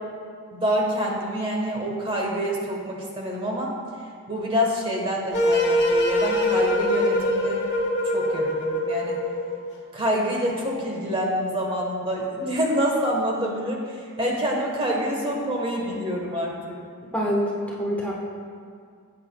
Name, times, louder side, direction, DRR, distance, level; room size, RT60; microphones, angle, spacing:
voice 1, 0.5-3.7 4.3-7.6 8.1-9.2 9.9-13.8 14.2-16.8, equal, 25° right, -1 dB, 1.1 m, -26 dB
sound 1, 5.3-9.6, left 1 dB, 50° left, 1.4 m, -23 dB
voice 2, 17.1-18.1, equal, 5° left, -4 dB, 1.0 m, -25 dB
14.5 x 8.4 x 2.2 m, 2.1 s
head